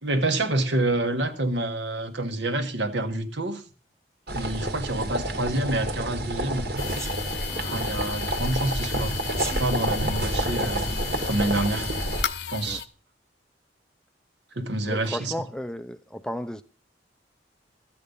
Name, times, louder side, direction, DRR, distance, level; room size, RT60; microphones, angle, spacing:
voice 1, 0.0-3.6 4.3-6.8 7.7-9.1 9.6-11.0 11.3-11.9 12.5-12.8 14.5-15.3, right 2 dB, 80° right, 1.5 m, -27 dB
sound 1, 4.3-12.2, right 1 dB, 60° right, 1.7 m, -29 dB
sound 2, 6.8-12.9, left 9 dB, 70° left, 0.7 m, -34 dB
Sneeze, 7.0-7.2 9.3-9.6, right 3 dB, 15° right, 1.5 m, -34 dB
voice 2, 14.8-16.6, equal, 5° left, 0.5 m, -34 dB
13.5 x 8.6 x 5.4 m
head